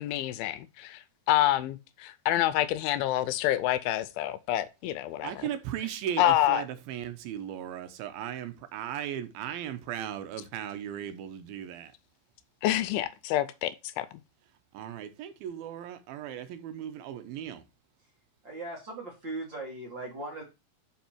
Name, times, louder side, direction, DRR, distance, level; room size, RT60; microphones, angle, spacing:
voice 1, 0.0-5.5 6.2-6.6 12.6-13.7 14.0-14.1, left 13 dB, 80° left, 2.3 m, -27 dB
voice 2, 5.2-11.9 14.7-17.6, right 10 dB, 80° right, 2.5 m, -37 dB
voice 3, 18.4-20.4, right 2 dB, 45° right, 1.6 m, -38 dB
5.7 x 5.4 x 4.3 m
omnidirectional pair, 4.4 m